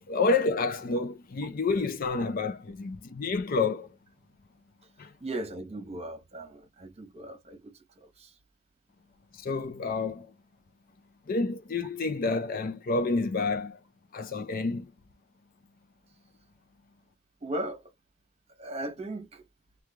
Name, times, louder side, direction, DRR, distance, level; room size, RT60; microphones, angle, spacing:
voice 1, 0.0-4.0 5.0-5.1 9.3-10.3 11.3-13.8 14.1-14.9, left 3 dB, 45° left, 0.5 m, -29 dB
voice 2, 5.2-8.3 17.4-17.9 18.6-19.4, right 1 dB, 30° right, 1.0 m, -38 dB
3.1 x 2.3 x 3.6 m
head